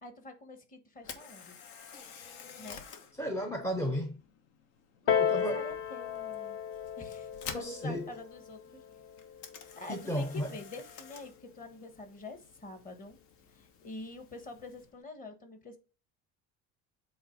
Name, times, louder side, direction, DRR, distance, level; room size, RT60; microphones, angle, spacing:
voice 1, 0.0-1.6 2.6-2.9 5.0-6.6 7.0-8.8 9.8-13.2 13.5-15.8, left 3 dB, 25° left, 1.3 m, -46 dB
Camera, 1.0-15.0, left 6 dB, 85° left, 1.4 m, -51 dB
voice 2, 3.2-4.2 5.2-5.7 7.5-8.1 9.9-10.5, equal, 10° left, 0.5 m, -34 dB
Piano, 5.1-10.3 11.1-11.2, left 8 dB, 45° left, 0.9 m, -34 dB
7.9 x 3.2 x 5.1 m
cardioid pair, 160°, 32 cm